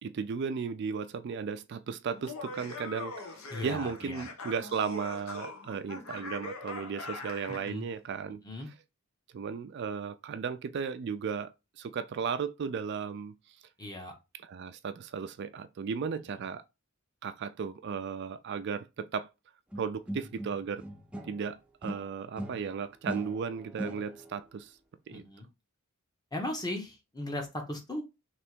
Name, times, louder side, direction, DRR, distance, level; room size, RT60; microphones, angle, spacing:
voice 1, 0.0-8.7 9.3-11.5 11.8-13.6 14.3-16.6 17.2-19.3 19.8-20.8 21.3-24.8 25.1-25.2, right 6 dB, 55° right, 0.4 m, -35 dB
Laughter, 2.1-7.7, left 3 dB, 85° left, 1.1 m, -42 dB
voice 2, 3.5-4.2 7.5-7.8 8.4-8.7 13.8-14.1 16.3-16.4 25.1-25.5 26.3-28.0, left 1 dB, 20° left, 1.1 m, -37 dB
sound 1, 19.7-21.5 21.8-24.4, right 1 dB, 5° right, 0.6 m, -40 dB
3.3 x 3.0 x 4.4 m
head